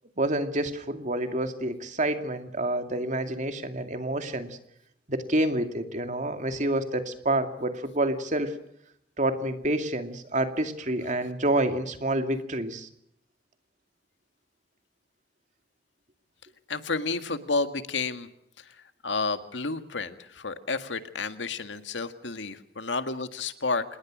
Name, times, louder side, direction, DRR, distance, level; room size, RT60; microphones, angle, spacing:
voice 1, 0.2-4.6 5.1-8.6 9.2-12.9, right 1 dB, 40° right, 7 dB, 2.4 m, -28 dB
voice 2, 16.7-18.3 18.6-18.7 19.0-23.8, left 3 dB, 90° left, 9 dB, 1.9 m, -31 dB
26.5 x 21.0 x 6.3 m, 0.75 s
head